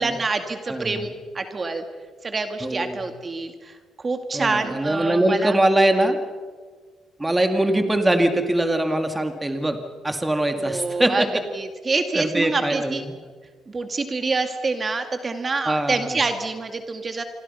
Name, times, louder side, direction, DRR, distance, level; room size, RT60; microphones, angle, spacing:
voice 1, 0.0-1.8 2.2-5.6 10.6-13.0 13.7-17.2, right 3 dB, 30° right, 6 dB, 2.1 m, -26 dB
voice 2, 0.7-1.0 2.6-3.1 4.3-6.2 7.2-9.8 10.0-11.3 12.1-13.1 15.6-16.2, right 1 dB, 15° right, 6 dB, 2.2 m, -22 dB
27.5 x 24.0 x 5.7 m, 1.5 s
cardioid pair, 90°, 0 cm